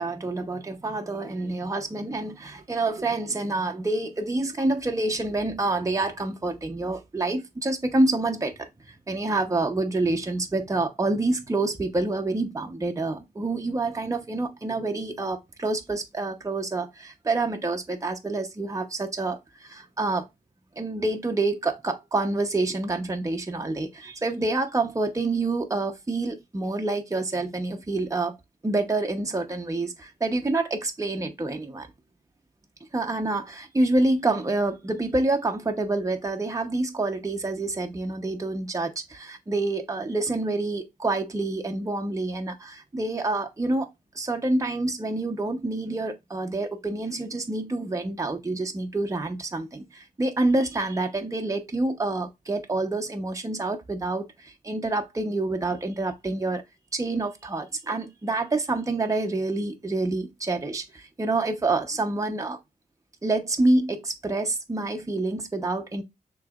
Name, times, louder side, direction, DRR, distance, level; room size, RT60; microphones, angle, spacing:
voice 1, 0.0-20.3 20.8-28.4 28.6-31.9 32.9-43.9 44.1-56.6 56.9-62.6 63.2-66.0, right 2 dB, 20° right, 0.9 m, -27 dB
6.4 x 3.1 x 2.4 m
cardioid pair, 75°, 16 cm